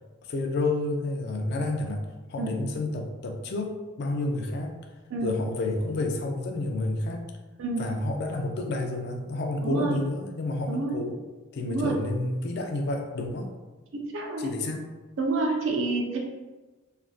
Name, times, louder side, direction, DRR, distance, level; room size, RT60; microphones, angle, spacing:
voice 1, 0.3-4.8 5.2-7.3 7.8-11.2 11.5-13.5 14.4-14.8, left 2 dB, 50° left, 3 dB, 0.4 m, -30 dB
voice 2, 9.6-10.0 10.7-11.0 11.7-11.9 13.9-14.5 15.2-16.2, right 3 dB, 60° right, 0 dB, 0.4 m, -28 dB
3.2 x 2.4 x 2.3 m, 1.2 s
head